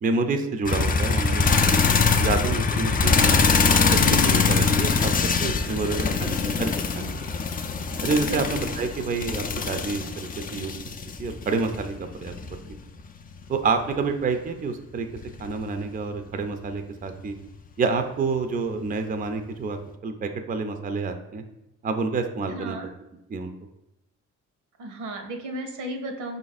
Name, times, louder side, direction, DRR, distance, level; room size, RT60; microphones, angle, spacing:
voice 1, 0.0-3.4 3.9-7.2 8.0-10.9 11.2-12.4 13.5-15.1 15.4-17.4 17.8-21.4 21.8-22.8 23.3-23.5, right 4 dB, 30° right, 7 dB, 0.4 m, -28 dB
sound 1, 0.7-13.5 15.2-15.8 17.5-17.6, left 5 dB, 30° left, 0.4 m, -23 dB
voice 2, 22.5-22.9 24.8-26.4, right 1 dB, 85° right, 5 dB, 0.9 m, -34 dB
5.1 x 2.5 x 4.0 m, 0.91 s
cardioid pair, 90°, 30 cm